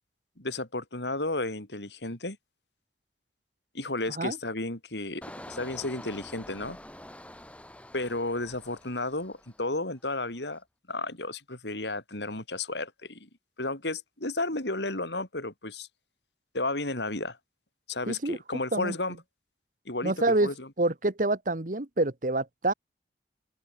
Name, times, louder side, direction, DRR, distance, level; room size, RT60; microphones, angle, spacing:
voice 1, 0.4-2.4 3.7-6.8 7.9-10.6 10.9-13.3 13.6-15.9 16.5-17.4 17.9-19.2 19.8-20.7, left 2 dB, 75° left, 4.9 m, -33 dB
Engine, 5.2-9.9 10.2-10.6, left 1 dB, 5° left, 4.2 m, -47 dB
voice 2, 18.1-18.4 18.7-18.9 20.0-20.5 20.8-22.7, right 2 dB, 45° right, 1.4 m, -27 dB
open air
head